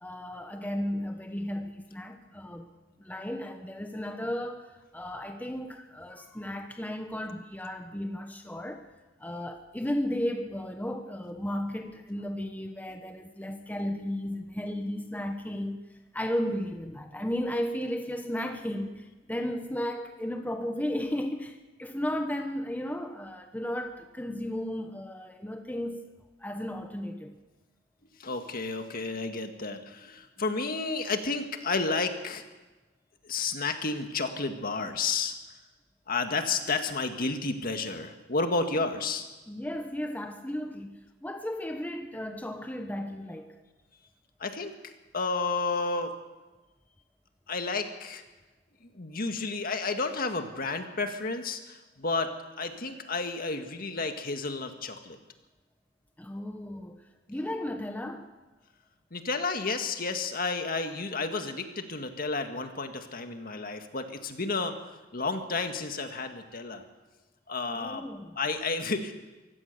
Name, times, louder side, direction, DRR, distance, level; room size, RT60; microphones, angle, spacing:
voice 1, 0.0-2.7 3.0-8.9 9.2-26.1 26.4-27.4 38.7-38.8 39.5-43.6 56.2-57.0 57.3-58.3 67.7-68.4, left 1 dB, 10° left, 1.0 m, -34 dB
voice 2, 28.2-32.4 33.2-35.3 36.1-39.3 44.4-46.1 47.5-48.2 48.9-52.3 52.6-55.2 59.1-64.8 65.1-66.8 67.5-68.0 68.4-69.1, left 3 dB, 50° left, 1.8 m, -31 dB
24.0 x 16.0 x 6.7 m
head